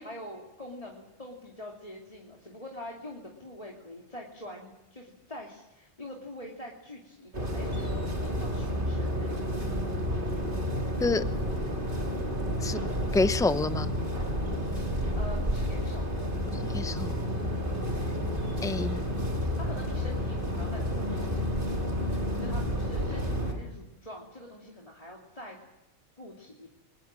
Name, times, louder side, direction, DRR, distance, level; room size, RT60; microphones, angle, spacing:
voice 1, 0.0-9.4 14.8-16.7 19.6-21.4 22.4-25.6 26.2-26.7, left 1 dB, 30° left, -2 dB, 2.8 m, -44 dB
sound 1, 7.3-23.5, equal, 45° right, 3.3 m, -30 dB
voice 2, 13.1-13.9 16.5-17.3 18.6-19.0, left 3 dB, 5° left, 12 dB, 0.6 m, -28 dB
29.5 x 21.0 x 7.5 m, 0.93 s
omnidirectional pair, 1.2 m